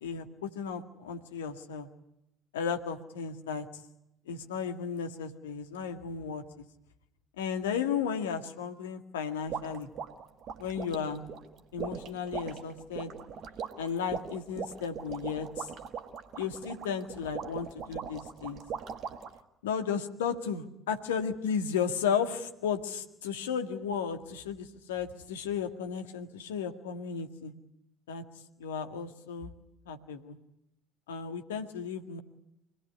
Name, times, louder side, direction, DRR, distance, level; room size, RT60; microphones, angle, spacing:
voice 1, 0.0-1.9 2.5-3.7 4.3-6.4 7.4-9.9 10.6-11.3 11.7-13.1 13.8-15.7 16.4-18.6 19.6-27.5 28.1-28.2 28.6-29.5 29.9-30.4 31.1-32.2, left 7 dB, 70° left, 7 dB, 2.0 m, -34 dB
sound 1, 9.5-19.4, right 6 dB, 45° right, 1.9 m, -40 dB
25.5 x 18.5 x 9.9 m, 0.81 s
figure-of-eight pair, 55°, 0 cm